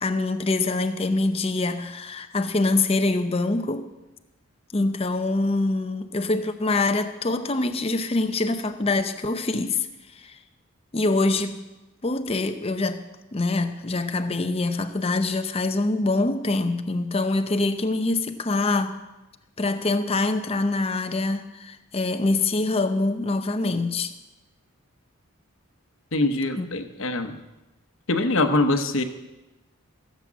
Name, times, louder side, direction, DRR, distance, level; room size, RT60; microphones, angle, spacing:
voice 1, 0.0-3.9 4.7-9.9 10.2-10.4 10.9-11.6 12.0-13.0 13.3-19.0 19.6-24.1 26.6-26.7, left 2 dB, 25° left, 0.7 m, -24 dB
voice 2, 26.1-27.4 28.1-29.0, left 2 dB, 65° left, 1.0 m, -23 dB
16.0 x 7.5 x 7.4 m
head